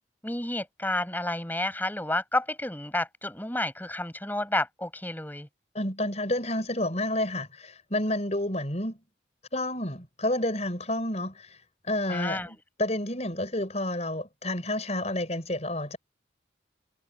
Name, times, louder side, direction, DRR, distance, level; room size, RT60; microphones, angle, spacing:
voice 1, 0.2-5.5 12.1-12.5, left 1 dB, 10° left, 5.6 m, -30 dB
voice 2, 5.7-9.0 9.5-11.6 11.8-16.0, left 1 dB, 35° left, 6.0 m, -30 dB
head